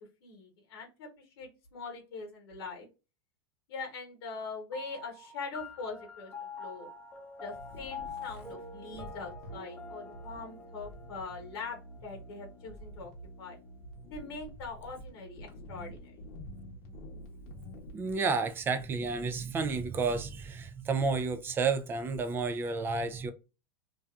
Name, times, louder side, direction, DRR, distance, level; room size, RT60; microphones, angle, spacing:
voice 1, 0.2-2.9 3.7-6.3 6.6-6.9 7.4-13.1 13.4-13.6 14.1-16.2, left 4 dB, 75° left, 1.0 m, -42 dB
sound 1, 4.7-13.5, left 4 dB, 10° left, 0.7 m, -47 dB
sound 2, 7.5-18.2, equal, 55° left, 0.9 m, -48 dB
voice 2, 17.9-23.3, right 4 dB, 15° right, 0.3 m, -31 dB
2.6 x 2.3 x 2.3 m
supercardioid pair, 130°, 13 cm